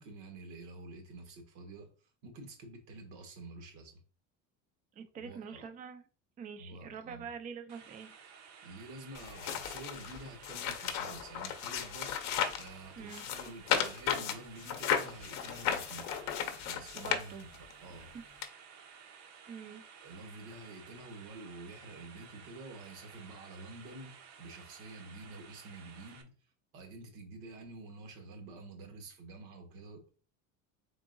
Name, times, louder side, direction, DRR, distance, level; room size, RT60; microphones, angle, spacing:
voice 1, 0.0-4.0 5.2-5.7 6.6-7.3 8.6-16.1 16.7-17.5 17.8-18.2 20.0-26.3 26.7-30.0, right 2 dB, 80° right, 1.3 m, -49 dB
voice 2, 4.9-6.0 6.4-8.1 13.0-13.2 17.0-17.4 18.0-18.2 19.5-19.8, right 6 dB, 25° right, 0.4 m, -45 dB
sound 1, 7.7-26.2, right 6 dB, 50° right, 0.7 m, -55 dB
sound 2, 9.1-12.7 13.1-17.7 18.4-18.5, left 8 dB, 50° left, 0.6 m, -34 dB
3.8 x 3.6 x 2.5 m
cardioid pair, 140°, 34 cm